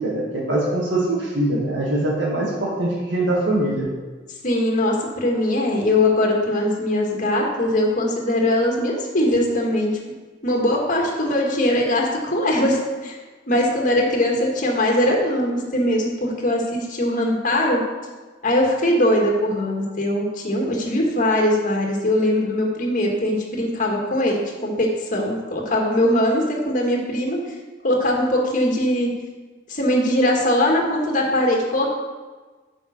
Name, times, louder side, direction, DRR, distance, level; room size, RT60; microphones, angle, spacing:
voice 1, 0.0-3.9, right 1 dB, 90° right, -6 dB, 2.0 m, -22 dB
voice 2, 4.4-10.0 10.4-13.2 13.5-17.8 18.4-27.4 27.8-29.1 29.7-31.9, left 1 dB, 45° left, 0 dB, 1.8 m, -21 dB
8.8 x 5.0 x 6.5 m, 1.3 s
head